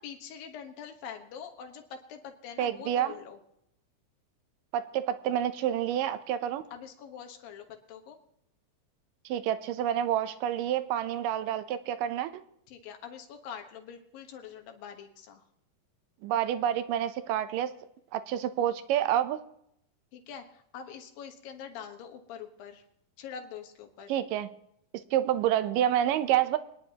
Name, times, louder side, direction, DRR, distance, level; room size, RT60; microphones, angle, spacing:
voice 1, 0.0-3.4 6.7-8.2 12.7-15.4 20.1-22.8 23.2-24.1, left 7 dB, 90° left, 4 dB, 3.0 m, -44 dB
voice 2, 2.6-3.2 4.7-6.6 9.3-12.3 16.2-17.7 18.1-19.4 24.1-24.5 25.1-26.6, right 11 dB, 80° right, 12 dB, 2.3 m, -28 dB
25.0 x 10.0 x 2.9 m, 0.75 s
omnidirectional pair, 3.9 m